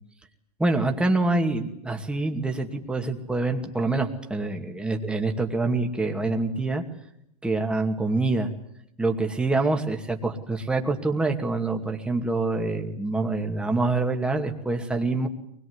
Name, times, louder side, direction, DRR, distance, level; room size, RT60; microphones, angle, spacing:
voice 1, 0.6-6.8 7.4-8.5 9.0-15.3, right 3 dB, 5° right, 3 dB, 2.4 m, -26 dB
23.5 x 21.5 x 9.7 m, 0.75 s
supercardioid pair, 145°, 20 cm